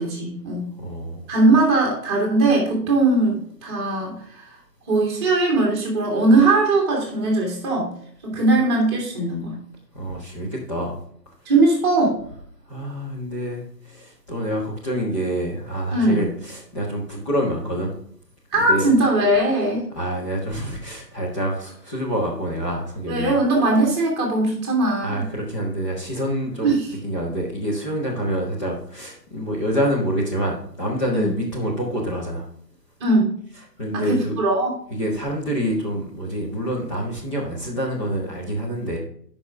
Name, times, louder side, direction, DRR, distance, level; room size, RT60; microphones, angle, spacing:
voice 1, 0.0-0.7 1.3-4.5 4.9-7.9 8.2-9.5 11.4-12.1 15.9-16.2 18.5-19.9 23.1-25.3 26.6-26.9 31.1-31.3 33.0-33.3 33.9-34.8, right 2 dB, 15° right, -2 dB, 1.8 m, -20 dB
voice 2, 0.8-1.2 8.3-8.4 9.9-11.0 12.7-17.9 18.6-18.9 19.9-23.3 25.0-26.8 27.0-32.4 33.8-34.4 34.9-39.0, equal, 20° left, -5 dB, 1.5 m, -27 dB
11.0 x 5.4 x 3.5 m, 0.63 s
figure-of-eight pair, 145°, 49 cm